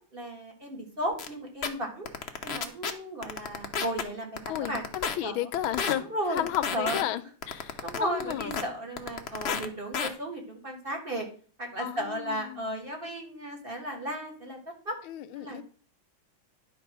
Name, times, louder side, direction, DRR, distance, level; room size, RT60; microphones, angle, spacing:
voice 1, 0.1-2.1 2.4-4.8 5.2-5.5 6.1-6.4 6.7-7.0 7.8-11.3 11.6-14.6 14.8-14.9 15.4-15.6, right 1 dB, 30° right, 1.8 m, -34 dB
sound 1, 1.2-1.3 1.6-1.7 2.1-2.9 3.2-4.0 4.4-5.2 5.5-5.9 6.4-7.0 7.4-8.6 9.0-9.7 9.9-10.1, left 6 dB, 55° left, 0.7 m, -30 dB
voice 2, 4.5-8.5 11.8-12.7 15.0-15.6, left 12 dB, 85° left, 1.5 m, -33 dB
10.5 x 4.2 x 6.0 m
omnidirectional pair, 2.2 m